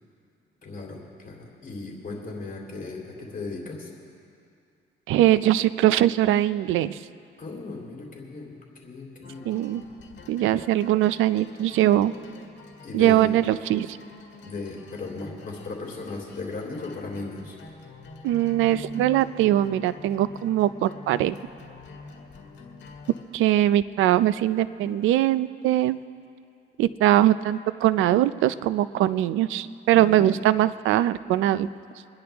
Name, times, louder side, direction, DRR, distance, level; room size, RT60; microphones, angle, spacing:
voice 1, 0.6-3.9 7.4-8.5 8.8-9.5 12.8-13.3 14.4-17.5 29.9-30.3, left 3 dB, 45° left, -2 dB, 3.4 m, -36 dB
voice 2, 5.1-7.0 9.5-9.8 10.3-12.1 12.9-14.0 18.2-21.4 23.3-26.0 26.8-31.7, right 13 dB, 90° right, 14 dB, 0.5 m, -21 dB
sound 1, 9.2-23.2, left 4 dB, 65° left, 1.9 m, -46 dB
26.5 x 10.0 x 3.5 m, 2.5 s
cardioid pair, 90°, 20 cm